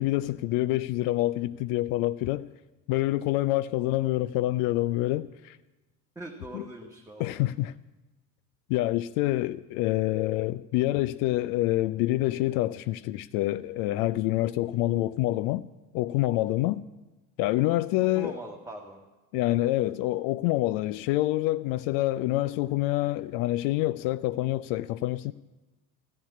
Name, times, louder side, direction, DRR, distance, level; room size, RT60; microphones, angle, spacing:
voice 1, 0.0-2.5 2.9-5.6 6.5-6.6 7.2-7.7 8.7-15.7 15.9-16.8 17.4-18.3 19.3-25.3, left 16 dB, 45° left, 0.5 m, -27 dB
voice 2, 6.2-7.4 17.6-17.8 18.2-19.1 19.8-19.9, right 2 dB, 5° right, 1.7 m, -42 dB
14.5 x 8.7 x 9.7 m
figure-of-eight pair, 65°, 47 cm